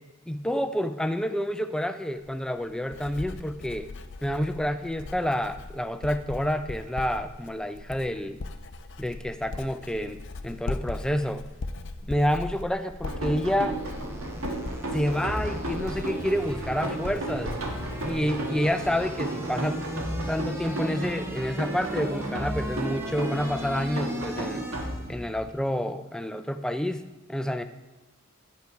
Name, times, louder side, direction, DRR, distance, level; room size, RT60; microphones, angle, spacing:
voice 1, 0.3-3.9 4.2-8.4 9.0-11.4 12.0-13.8 14.9-17.5 18.0-19.8 20.3-24.7 25.1-27.6, equal, 5° left, 9 dB, 0.4 m, -29 dB
Writing, 2.2-19.2 19.5-20.0, left 2 dB, 60° left, 0.5 m, -40 dB
sound 1, 13.0-25.2, equal, 10° right, 0.8 m, -38 dB
sound 2, 13.0-25.5, right 1 dB, 80° right, 1.5 m, -34 dB
9.0 x 5.7 x 4.5 m, 1.2 s
head